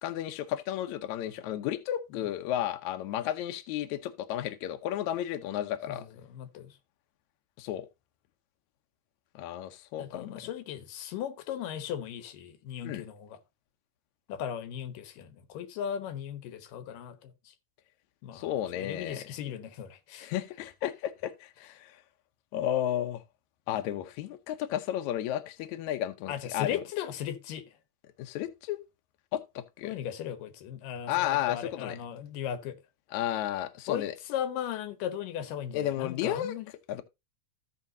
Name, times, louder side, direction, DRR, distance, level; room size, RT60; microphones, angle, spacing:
voice 1, 0.0-6.0 7.6-7.9 9.4-10.4 12.8-13.0 18.3-19.2 20.2-21.9 22.5-23.2 23.7-26.8 28.2-28.8 29.3-29.9 31.1-32.0 33.1-34.1 35.7-36.5 36.9-37.0, left 12 dB, 70° left, 2.1 m, -33 dB
voice 2, 5.9-6.8 10.0-13.4 14.3-17.5 18.2-18.5 18.7-20.3 26.3-27.6 29.8-32.8 33.9-36.7, left 9 dB, 85° left, 2.7 m, -37 dB
15.0 x 5.8 x 2.7 m
omnidirectional pair, 3.7 m